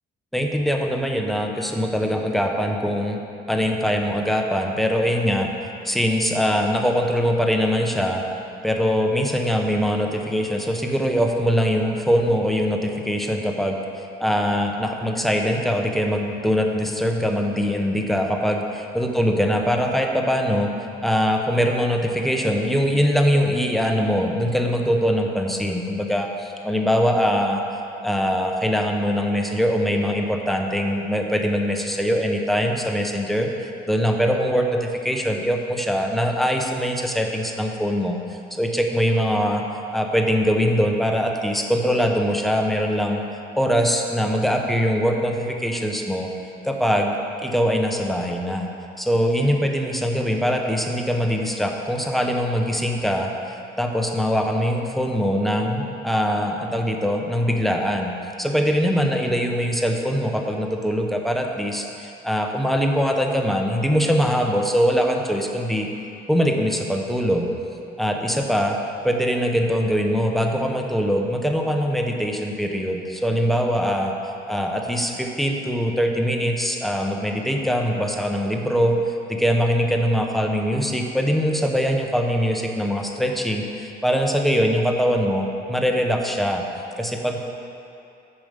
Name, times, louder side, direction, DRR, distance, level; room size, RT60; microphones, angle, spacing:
voice 1, 0.3-3.2 3.5-5.5 5.8-8.2 8.6-13.8 14.2-20.7 21.0-27.6 28.0-33.5 33.9-38.2 38.6-39.6 39.9-43.2 43.6-46.3 46.6-47.1 47.4-48.7 49.0-53.3 53.8-58.1 58.4-65.9 66.3-67.5 68.0-68.8 69.0-74.1 74.5-79.0 79.3-86.6 87.0-87.4, equal, ahead, 2 dB, 0.8 m, -22 dB
7.3 x 5.0 x 6.5 m, 2.7 s
cardioid pair, 110°, 17 cm